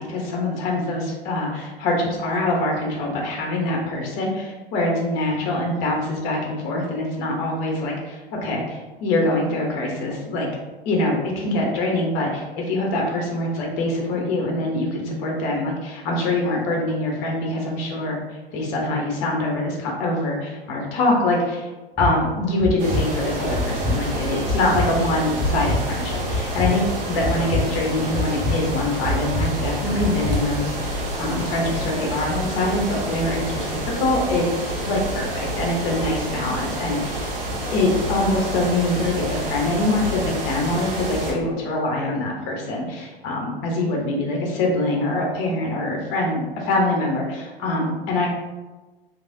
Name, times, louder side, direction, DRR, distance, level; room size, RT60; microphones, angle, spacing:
voice 1, 0.0-10.5 10.8-18.2 18.5-21.7 22.0-37.3 37.7-48.3, left 2 dB, 40° left, 0 dB, 0.9 m, -24 dB
sound 1, 22.0-22.1 22.6-23.0 23.5-23.9 24.4-24.8 25.4-25.8 26.3-26.7 27.2-27.6 28.1-28.5 29.0-29.4 30.0-30.4, left 2 dB, 5° right, 0.8 m, -24 dB
sound 2, 22.8-41.3, right 1 dB, 65° right, 0.8 m, -28 dB
3.2 x 2.6 x 2.6 m, 1.2 s
figure-of-eight pair, 95°, 31 cm